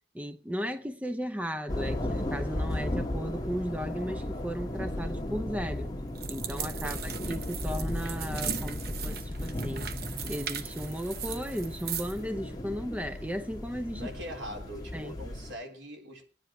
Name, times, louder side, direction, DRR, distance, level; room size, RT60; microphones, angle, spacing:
voice 1, 0.1-5.9 6.3-9.9 10.3-14.1 14.9-15.2, equal, 10° right, 0.6 m, -35 dB
sound 1, 1.7-15.5, left 1 dB, 20° left, 1.6 m, -35 dB
sound 2, 6.2-12.2, right 9 dB, 55° right, 0.9 m, -39 dB
voice 2, 6.8-7.1 13.9-16.2, equal, 75° right, 4.0 m, -42 dB
23.0 x 10.5 x 3.1 m
head